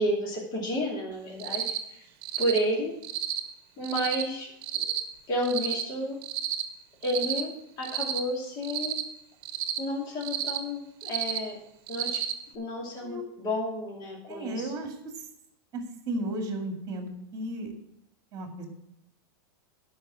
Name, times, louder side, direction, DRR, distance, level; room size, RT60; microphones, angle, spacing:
voice 1, 0.0-2.0 2.4-2.9 3.8-4.5 4.9-5.0 5.3-6.2 7.0-7.5 7.8-9.0 9.8-11.6 11.9-12.2 12.5-14.7, equal, 35° left, -3 dB, 2.7 m, -31 dB
Cricket, 1.4-1.8 2.2-2.6 3.0-3.4 3.8-4.2 4.6-5.0 5.4-5.8 6.2-6.6 7.0-7.4 7.8-8.2 8.6-9.0 9.4-9.8 10.2-10.6 11.0-11.4 11.9-12.3, right 11 dB, 45° right, 1.1 m, -31 dB
voice 2, 14.3-15.2 15.7-17.7 18.3-18.7, right 1 dB, 30° right, 3 dB, 2.2 m, -34 dB
12.0 x 5.5 x 6.2 m, 0.82 s
supercardioid pair, 145°, 12 cm